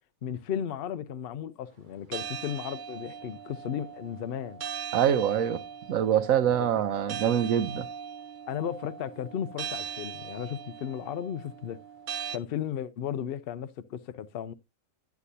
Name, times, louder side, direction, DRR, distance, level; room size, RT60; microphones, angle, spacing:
voice 1, 0.2-4.6 6.4-6.7 8.5-11.8 12.3-14.5, left 9 dB, 55° left, 0.7 m, -35 dB
sound 1, 2.1-12.4, right 7 dB, 55° right, 0.6 m, -40 dB
voice 2, 4.9-5.6 5.9-7.9, right 9 dB, 80° right, 1.1 m, -24 dB
9.8 x 8.3 x 2.7 m
omnidirectional pair, 1.4 m